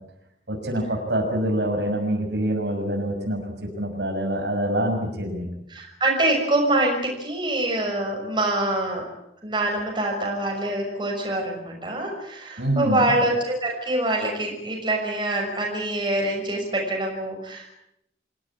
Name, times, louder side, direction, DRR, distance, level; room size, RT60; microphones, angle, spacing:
voice 1, 0.5-5.5 12.6-13.1, right 1 dB, 80° right, 2 dB, 6.5 m, -25 dB
voice 2, 5.7-9.1 9.4-17.7, right 1 dB, 25° right, 0 dB, 6.3 m, -25 dB
27.5 x 16.5 x 8.7 m, 0.82 s
head